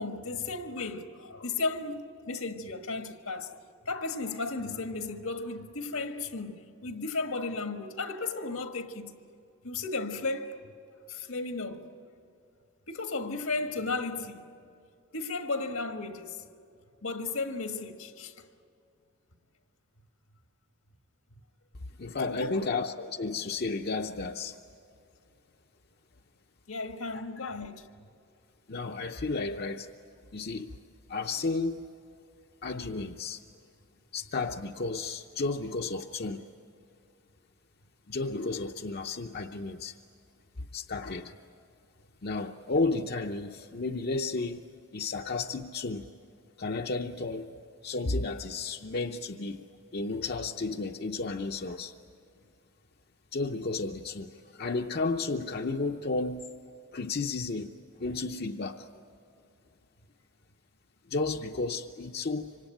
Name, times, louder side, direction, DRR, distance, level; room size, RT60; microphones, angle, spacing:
voice 1, 0.0-3.6 3.8-9.1 9.6-10.6 11.1-11.9 12.9-14.4 15.1-16.4 17.0-18.4 22.3-22.5 26.7-27.9, left 3 dB, 80° left, 1.6 m, -34 dB
voice 2, 22.0-24.6 27.4-27.5 28.7-29.9 30.3-30.7 31.1-31.9 32.6-33.4 34.1-36.5 38.1-40.0 40.7-41.3 42.2-46.0 46.6-47.5 47.8-51.9 53.3-56.6 56.9-57.7 58.0-58.9 61.1-62.7, left 3 dB, 45° left, 0.7 m, -33 dB
26.0 x 25.0 x 9.1 m
head